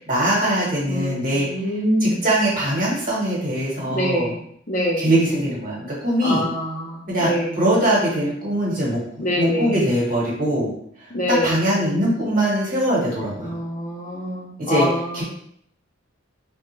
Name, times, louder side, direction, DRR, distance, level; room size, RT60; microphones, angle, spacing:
voice 1, 0.1-1.5 2.0-4.3 5.0-6.4 7.1-10.7 11.3-13.5 14.7-14.9 15.1-15.2, right 1 dB, 45° right, -5 dB, 1.2 m, -22 dB
voice 2, 0.9-2.2 3.9-4.3 4.7-5.1 6.2-7.6 9.2-9.8 11.1-11.6 13.4-15.2, equal, 40° left, -3 dB, 0.7 m, -25 dB
3.4 x 2.2 x 3.1 m, 0.66 s
head